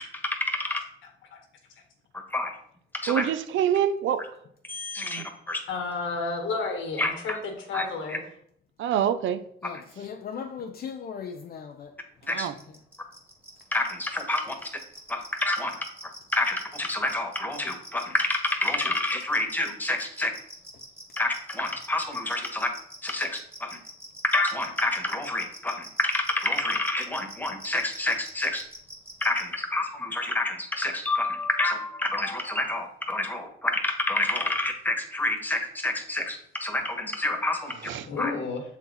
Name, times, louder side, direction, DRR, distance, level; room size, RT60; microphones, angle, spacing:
voice 1, 0.2-0.8 2.3-2.6 3.0-3.2 4.7-5.6 7.0-7.4 7.7-8.2 12.3-12.5 13.7-14.7 15.1-15.8 16.3-20.3 21.2-22.7 23.0-23.8 24.2-28.6 29.2-37.7 38.2-38.3, left 2 dB, 10° left, 1.4 m, -28 dB
voice 2, 3.1-4.3 5.0-5.3 8.8-9.4 12.2-12.5 37.8-38.1, right 9 dB, 75° right, 0.6 m, -26 dB
voice 3, 5.7-8.2 38.0-38.6, left 4 dB, 75° left, 1.7 m, -31 dB
voice 4, 9.6-11.9 12.2-12.4, left 6 dB, 50° left, 0.6 m, -38 dB
sound 1, 12.3-29.4, right 1 dB, 10° right, 1.7 m, -44 dB
7.0 x 4.2 x 4.1 m
cardioid pair, 90°, 20 cm